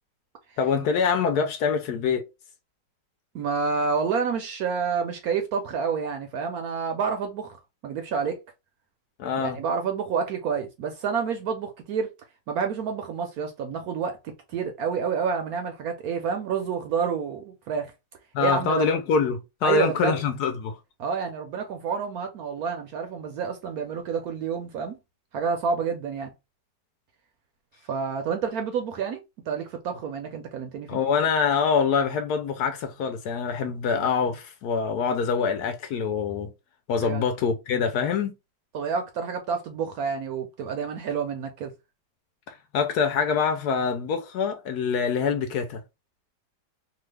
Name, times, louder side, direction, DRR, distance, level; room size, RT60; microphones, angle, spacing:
voice 1, 0.6-2.3 9.2-9.6 18.3-20.8 30.9-36.5 36.9-38.3 42.7-45.8, left 6 dB, 70° left, 1.0 m, -25 dB
voice 2, 3.3-7.6 7.8-8.4 9.4-12.1 12.5-17.9 18.4-18.9 19.6-20.2 21.0-25.0 25.3-26.3 27.9-29.2 29.5-31.0 37.0-37.3 38.7-41.7, right 6 dB, 70° right, 0.9 m, -29 dB
3.0 x 2.3 x 3.2 m
omnidirectional pair, 1.9 m